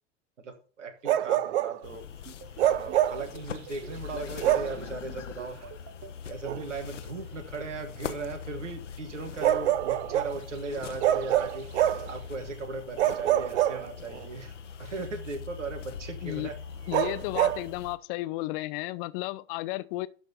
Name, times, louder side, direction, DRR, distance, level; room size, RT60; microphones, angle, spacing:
voice 1, 0.4-2.0 2.6-5.6 6.2-11.7 12.1-16.5, right 3 dB, 80° right, 1.5 m, -38 dB
Bark, 1.0-1.8 2.6-3.3 4.4-4.8 6.4-6.6 9.4-10.4 11.0-12.1 13.0-14.2 16.9-17.6, right 12 dB, 65° right, 0.6 m, -25 dB
sound 1, 1.8-18.0, left 7 dB, 80° left, 0.8 m, -42 dB
sound 2, 2.3-6.1, right 8 dB, 40° right, 1.0 m, -46 dB
voice 2, 16.9-20.1, left 19 dB, 45° left, 0.6 m, -33 dB
12.0 x 4.2 x 5.3 m
figure-of-eight pair, 85°, 36 cm